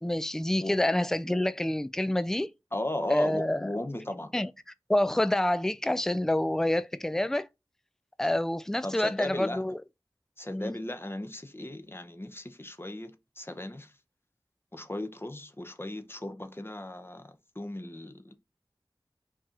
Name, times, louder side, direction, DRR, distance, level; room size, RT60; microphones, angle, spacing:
voice 1, 0.0-2.5 3.1-3.7 4.3-4.5 4.9-7.5 8.2-9.8 10.5-10.8, left 1 dB, 5° left, 0.3 m, -27 dB
voice 2, 2.7-4.3 8.8-9.6 10.4-13.9 14.7-18.4, left 1 dB, 25° left, 0.8 m, -36 dB
4.6 x 2.9 x 3.7 m
wide cardioid pair, 55°, 9 cm